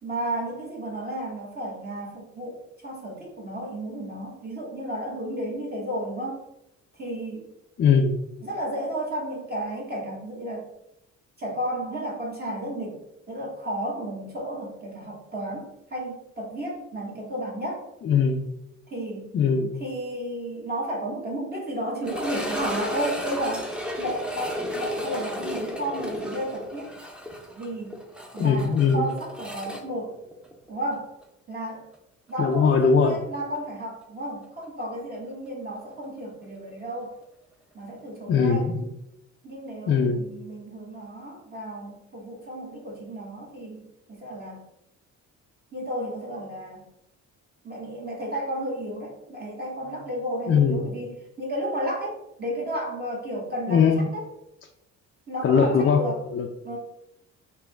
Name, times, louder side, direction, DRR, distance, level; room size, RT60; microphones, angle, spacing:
voice 1, 0.0-6.4 7.0-7.4 8.4-10.7 11.4-13.0 13.3-17.9 18.9-19.3 19.8-23.7 24.0-26.9 27.6-28.0 28.3-30.2 30.7-31.2 31.5-31.8 32.3-37.2 37.7-38.8 39.4-43.8 44.1-44.6 45.7-46.9 47.6-54.2 55.3-56.2 56.6-56.8, right 1 dB, 30° right, -3 dB, 1.2 m, -33 dB
voice 2, 7.8-8.2 18.0-18.4 19.3-19.8 28.4-29.1 32.4-33.2 38.3-38.9 39.9-40.2 50.5-50.9 53.7-54.1 55.4-56.0 56.3-56.5, left 6 dB, 40° left, 2 dB, 0.4 m, -20 dB
sound 1, 22.0-31.0 31.2-31.3 31.9-32.0 34.6-34.7, equal, 5° right, 0.7 m, -33 dB
3.6 x 2.9 x 3.3 m, 0.83 s
cardioid pair, 90°, 30 cm